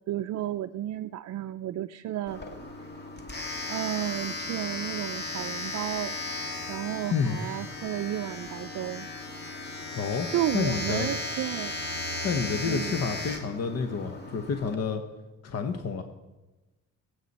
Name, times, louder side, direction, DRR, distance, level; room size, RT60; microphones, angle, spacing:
voice 1, 0.1-2.4 2.8-2.9 3.7-6.2 6.7-9.1 10.3-11.7 12.6-13.0, right 12 dB, 60° right, 7 dB, 0.5 m, -32 dB
Domestic sounds home sounds, 2.3-14.7, left 2 dB, 35° left, 2.0 m, -36 dB
voice 2, 9.9-10.3 10.5-11.1 12.2-15.0 15.4-16.0, left 5 dB, 55° left, 7 dB, 1.1 m, -29 dB
22.0 x 8.3 x 4.2 m, 1.1 s
cardioid pair, 90°, 30 cm